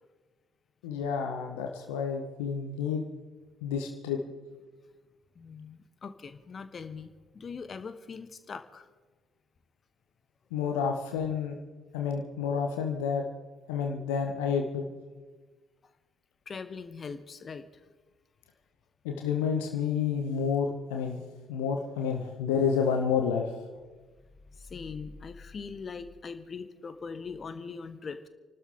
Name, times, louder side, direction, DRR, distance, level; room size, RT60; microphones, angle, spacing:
voice 1, 0.8-3.0 3.6-4.2 10.5-11.6 11.9-13.2 13.7-14.8 19.0-21.2 21.5-23.7, left 6 dB, 70° left, 3 dB, 1.4 m, -29 dB
voice 2, 5.3-8.9 16.5-17.8 24.6-28.3, left 5 dB, 35° left, 10 dB, 1.4 m, -41 dB
29.5 x 12.5 x 3.8 m, 1.3 s
figure-of-eight pair, 50°, 0 cm